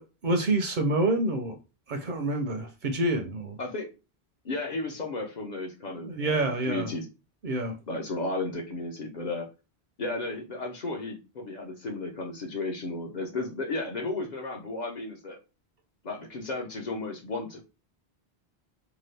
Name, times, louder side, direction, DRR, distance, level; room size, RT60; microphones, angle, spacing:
voice 1, 0.0-1.6 1.9-3.6 6.0-6.9 7.4-7.7, right 2 dB, 55° right, 0.6 m, -27 dB
voice 2, 3.6-3.9 4.4-7.1 7.9-9.5 10.0-15.4 16.0-17.6, left 2 dB, 50° left, 0.6 m, -34 dB
2.8 x 2.3 x 3.2 m
omnidirectional pair, 1.1 m